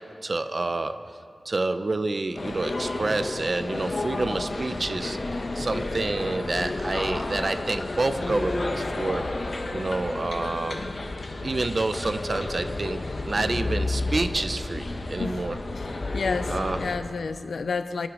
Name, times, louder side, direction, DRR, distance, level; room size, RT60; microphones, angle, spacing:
voice 1, 0.2-1.0 1.5-5.2 5.5-9.2 9.7-10.9 11.4-15.6 16.5-16.8, right 2 dB, 50° right, 10 dB, 0.8 m, -28 dB
sound 1, 2.3-17.0, left 2 dB, 60° left, 1.6 m, -31 dB
voice 2, 15.8-18.1, left 4 dB, 90° left, 10 dB, 0.6 m, -31 dB
25.5 x 9.4 x 5.0 m, 2.4 s
wide cardioid pair, 75°, 0 cm